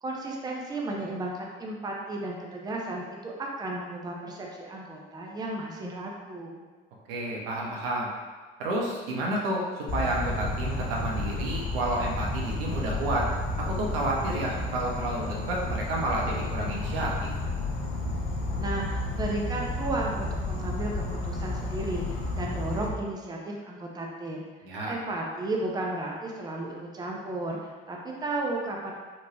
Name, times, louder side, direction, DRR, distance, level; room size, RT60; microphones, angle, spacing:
voice 1, 0.0-6.6 18.6-24.4 24.9-28.9, right 2 dB, 15° right, -1 dB, 0.5 m, -34 dB
voice 2, 7.1-8.1 8.6-13.3 13.6-17.3 24.6-25.0, right 1 dB, 75° right, -2 dB, 0.6 m, -30 dB
Insect, 9.9-22.9, left 2 dB, 45° left, 0.7 m, -31 dB
2.8 x 2.1 x 3.1 m, 1.3 s
figure-of-eight pair, 55°, 29 cm